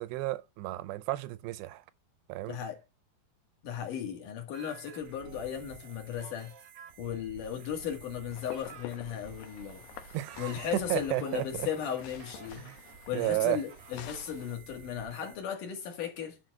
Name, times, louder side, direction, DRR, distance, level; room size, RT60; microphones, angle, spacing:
voice 1, 0.0-1.8 2.3-2.6 10.1-11.7 12.5-12.8 13.1-13.6, right 18 dB, 85° right, 2.8 m, -32 dB
voice 2, 2.5-2.8 3.6-6.5 7.0-12.6 13.1-16.4, left 9 dB, 55° left, 3.1 m, -36 dB
sound 1, 4.5-15.4, right 7 dB, 70° right, 1.7 m, -51 dB
sound 2, 8.3-14.6, left 12 dB, 75° left, 2.1 m, -50 dB
10.5 x 4.4 x 6.7 m
omnidirectional pair, 4.8 m